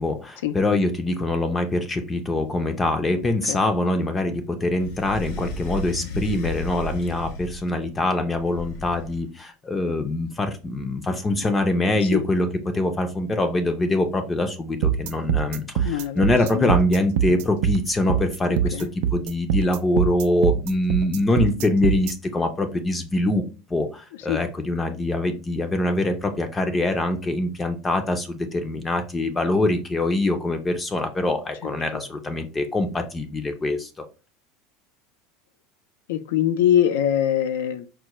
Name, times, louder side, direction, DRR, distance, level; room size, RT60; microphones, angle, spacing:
voice 1, 0.0-12.5 12.7-23.4 23.7-34.0, left 2 dB, 15° left, 7 dB, 0.4 m, -24 dB
sound 1, 4.8-7.8 8.3-9.3, left 1 dB, 70° left, 0.7 m, -33 dB
sound 2, 14.8-22.1, right 9 dB, 75° right, 0.3 m, -23 dB
voice 2, 15.8-16.2 16.5-16.7 18.5-18.9 24.3-24.4 31.6-32.0 36.1-37.9, left 10 dB, 90° left, 10 dB, 0.3 m, -23 dB
4.5 x 2.1 x 2.9 m, 0.33 s
supercardioid pair, 135°, 0 cm